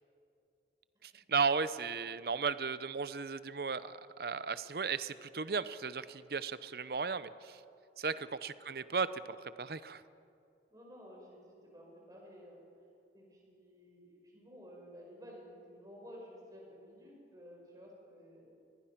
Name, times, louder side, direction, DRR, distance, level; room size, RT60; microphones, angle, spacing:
voice 1, 1.0-7.6 8.0-10.0, right 5 dB, 55° right, 15 dB, 0.7 m, -35 dB
voice 2, 10.7-12.6 13.1-18.6, equal, 20° right, -2 dB, 5.2 m, -53 dB
23.5 x 19.0 x 5.9 m, 2.6 s
head